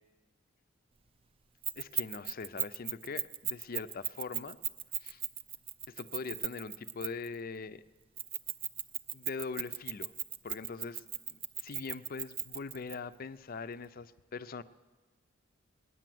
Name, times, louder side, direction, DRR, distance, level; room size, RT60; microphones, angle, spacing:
Keys jangling, 1.6-7.3 8.2-12.9, right 9 dB, 25° right, 0.4 m, -36 dB
voice 1, 1.8-4.6 5.0-5.2 5.9-7.8 9.1-10.1 10.4-14.6, left 4 dB, 45° left, 14 dB, 0.5 m, -42 dB
19.0 x 9.9 x 7.7 m, 1.3 s
head